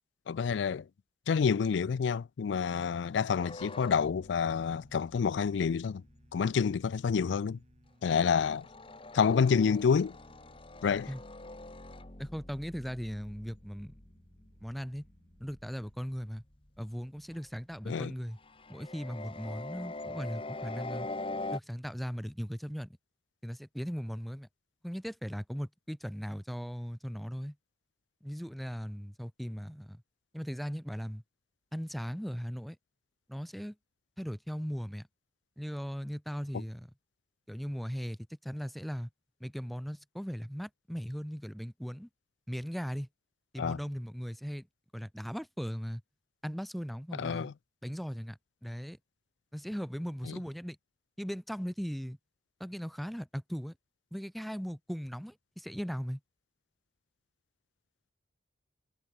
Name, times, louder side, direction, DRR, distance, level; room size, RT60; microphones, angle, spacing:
voice 1, 0.3-0.9 1.3-6.0 6.3-7.6 8.0-8.7 9.1-10.2 10.8-11.1 17.9-18.1 43.6-43.8 47.2-47.5 50.3-50.4, left 6 dB, 80° left, 0.4 m, -28 dB
sound 1, 3.4-7.9 8.2-17.7 18.3-21.6, left 2 dB, 30° left, 2.0 m, -45 dB
sound 2, 4.3-16.2, equal, 40° right, 6.3 m, -68 dB
voice 2, 12.2-14.0 14.6-15.1 15.4-16.4 16.8-18.4 18.7-21.1 21.5-23.0 23.4-24.5 24.8-27.6 28.2-30.0 30.3-31.2 31.7-32.8 33.3-33.8 34.2-35.1 35.6-36.9 37.5-39.1 39.4-42.1 42.5-43.1 43.5-44.7 44.9-46.0 46.4-47.5 47.8-49.0 49.5-50.8 51.2-52.2 52.6-53.7 54.1-56.2, equal, ahead, 0.4 m, -38 dB
head